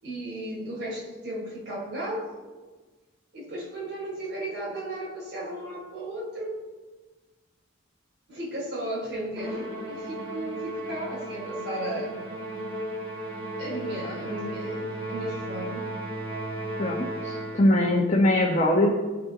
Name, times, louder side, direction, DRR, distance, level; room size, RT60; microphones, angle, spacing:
voice 1, 0.0-2.3 3.3-6.6 8.3-12.2 13.6-15.9, right 1 dB, 55° right, -4 dB, 4.3 m, -35 dB
Musical instrument, 9.4-17.8, right 1 dB, 25° right, 3.1 m, -35 dB
voice 2, 16.8-19.0, left 1 dB, 35° left, -2 dB, 1.3 m, -22 dB
17.5 x 6.7 x 4.1 m, 1.3 s
head